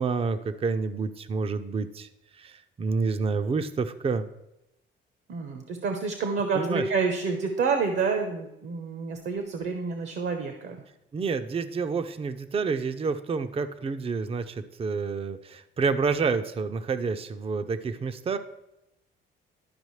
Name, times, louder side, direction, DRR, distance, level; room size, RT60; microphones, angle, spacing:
voice 1, 0.0-2.1 2.4-2.5 2.8-4.3 6.5-6.8 11.1-18.4, right 4 dB, 30° right, 10 dB, 0.5 m, -28 dB
voice 2, 5.3-10.8, right 4 dB, 65° right, 5 dB, 0.9 m, -28 dB
12.0 x 4.9 x 3.2 m, 0.88 s
cardioid pair, 90°, 20 cm